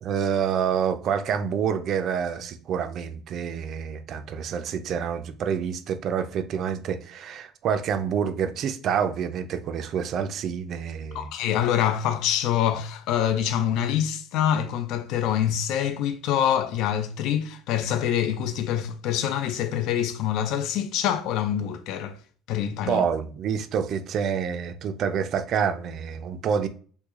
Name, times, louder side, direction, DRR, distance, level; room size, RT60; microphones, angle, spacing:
voice 1, 0.0-11.3 22.9-26.7, right 7 dB, 50° right, 0.4 m, -27 dB
voice 2, 11.1-22.2 22.5-23.0, left 10 dB, 65° left, 0.4 m, -25 dB
3.1 x 2.2 x 3.5 m
cardioid pair, 135°, 0 cm